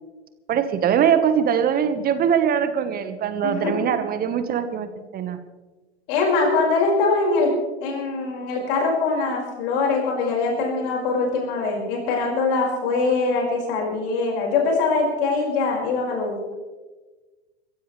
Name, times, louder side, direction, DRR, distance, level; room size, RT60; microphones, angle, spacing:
voice 1, 0.5-5.4, right 8 dB, 25° right, 10 dB, 1.3 m, -22 dB
voice 2, 3.4-3.7 6.1-7.5 7.8-16.5, left 3 dB, 55° left, -1 dB, 5.3 m, -23 dB
24.0 x 15.5 x 3.3 m, 1.2 s
figure-of-eight pair, 95°, 33 cm